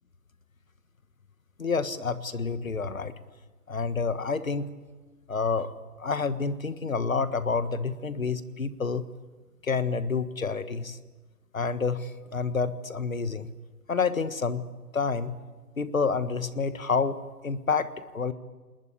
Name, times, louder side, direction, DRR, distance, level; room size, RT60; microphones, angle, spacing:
voice 1, 1.6-3.1 3.7-4.7 5.3-5.7 6.0-9.0 9.6-11.0 11.5-13.5 13.9-14.6 14.9-15.3 15.8-18.3, left 4 dB, 55° left, 13 dB, 1.6 m, -28 dB
26.0 x 20.5 x 8.5 m, 1.3 s
figure-of-eight pair, 175°, 47 cm